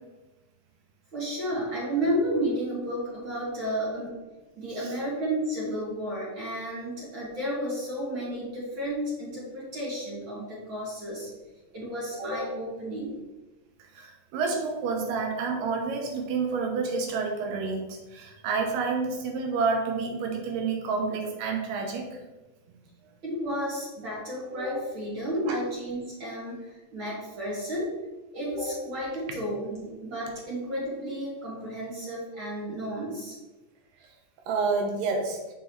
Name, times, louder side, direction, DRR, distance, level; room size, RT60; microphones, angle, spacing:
voice 1, 1.1-4.1 4.6-11.3 11.7-13.2 23.2-27.9 28.3-33.3, equal, 40° right, -7 dB, 2.8 m, -32 dB
voice 2, 14.0-22.1 25.5-25.6 34.5-35.4, right 4 dB, 90° right, 2 dB, 2.8 m, -29 dB
6.9 x 6.8 x 3.2 m, 1.1 s
omnidirectional pair, 3.8 m